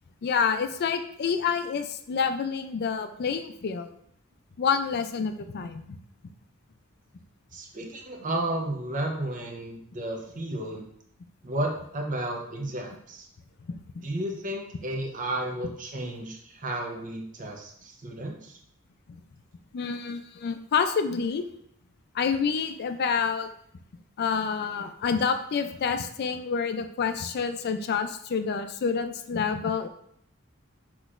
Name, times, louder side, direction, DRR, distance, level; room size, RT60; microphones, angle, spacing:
voice 1, 0.2-3.9 4.6-6.0 13.7-14.0 19.7-21.5 22.1-23.5 24.2-29.9, left 6 dB, 50° left, 9 dB, 0.4 m, -28 dB
voice 2, 7.5-10.9 11.4-13.3 14.0-18.6, right 1 dB, 40° right, 1 dB, 0.8 m, -33 dB
5.9 x 3.0 x 2.5 m, 0.69 s
head